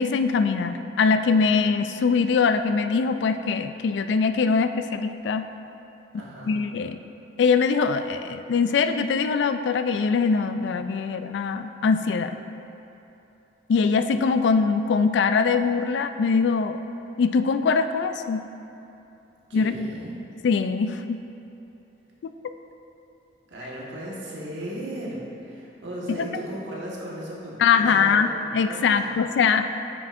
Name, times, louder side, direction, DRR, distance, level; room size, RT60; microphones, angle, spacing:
voice 1, 0.0-5.5 6.1-7.0 7.4-12.4 13.7-16.8 17.2-18.4 19.5-19.7 20.4-21.2 22.2-22.3 26.1-26.3 27.6-29.7, left 5 dB, 75° left, 9 dB, 0.3 m, -22 dB
voice 2, 6.2-6.6 19.5-20.2 23.5-28.3 28.7-29.1, right 1 dB, 85° right, -5 dB, 1.4 m, -36 dB
9.1 x 6.0 x 2.5 m, 2.9 s
head